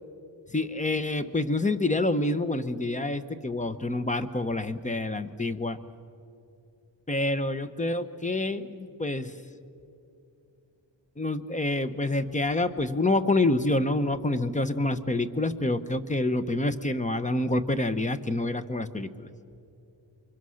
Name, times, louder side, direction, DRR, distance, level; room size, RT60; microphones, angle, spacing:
voice 1, 0.5-5.8 7.1-9.3 11.2-19.3, left 2 dB, 15° left, 11 dB, 0.8 m, -27 dB
27.5 x 24.5 x 6.4 m, 2.6 s
wide cardioid pair, 140°, 45 cm